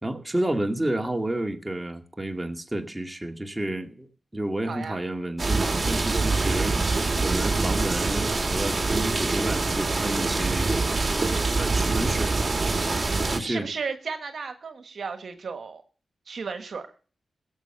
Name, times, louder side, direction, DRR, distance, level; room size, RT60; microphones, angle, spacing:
voice 1, 0.0-4.1 4.3-6.7 7.2-11.1 11.6-12.6 13.3-13.7, right 1 dB, 15° right, 4 dB, 2.2 m, -30 dB
voice 2, 4.7-5.0 6.4-6.7 13.4-15.8 16.3-16.9, right 5 dB, 70° right, 7 dB, 1.4 m, -34 dB
sound 1, 5.4-13.4, right 3 dB, 40° right, 2.4 m, -25 dB
16.5 x 7.5 x 6.8 m, 0.40 s
cardioid pair, 60°, 0 cm